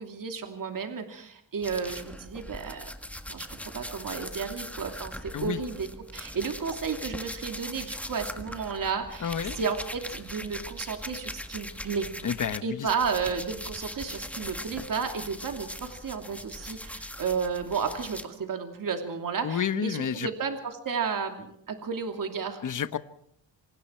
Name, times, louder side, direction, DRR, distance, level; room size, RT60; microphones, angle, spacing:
voice 1, 0.0-2.9 3.3-12.1 12.6-22.6, right 5 dB, 45° right, 4 dB, 2.8 m, -32 dB
sound 1, 1.6-12.6 12.9-18.3, left 1 dB, 5° left, 1.7 m, -40 dB
voice 2, 9.2-9.6 12.2-12.9 19.4-20.3 22.6-23.0, left 8 dB, 45° left, 11 dB, 1.2 m, -30 dB
27.0 x 25.5 x 4.6 m, 0.71 s
cardioid pair, 115°, 44 cm